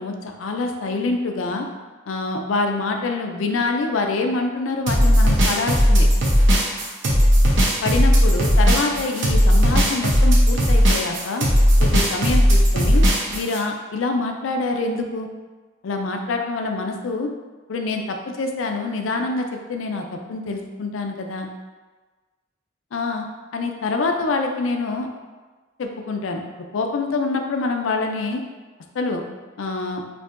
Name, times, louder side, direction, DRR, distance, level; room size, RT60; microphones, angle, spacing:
voice 1, 0.0-1.7 2.1-6.1 7.8-11.5 11.8-13.0 13.3-15.3 15.8-17.3 17.7-21.5 22.9-23.2 23.5-25.1 25.8-26.4 26.7-28.4 28.9-29.2 29.6-30.0, left 3 dB, 80° left, 4 dB, 0.4 m, -25 dB
sound 1, 4.9-13.6, equal, 65° right, 0.8 m, -16 dB
4.6 x 2.6 x 2.5 m, 1.3 s
head